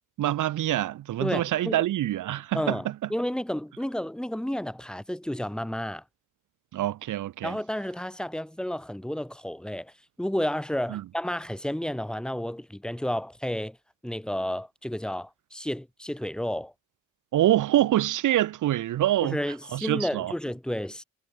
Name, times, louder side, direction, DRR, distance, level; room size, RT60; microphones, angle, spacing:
voice 1, 0.2-2.9 6.7-7.6 10.9-11.0 17.3-19.4 19.7-20.3, right 13 dB, 85° right, 0.7 m, -25 dB
voice 2, 1.2-1.8 2.5-6.0 7.4-9.9 10.2-13.8 14.0-16.7 19.2-21.0, equal, 5° left, 1.3 m, -31 dB
cardioid pair, 115°, 30 cm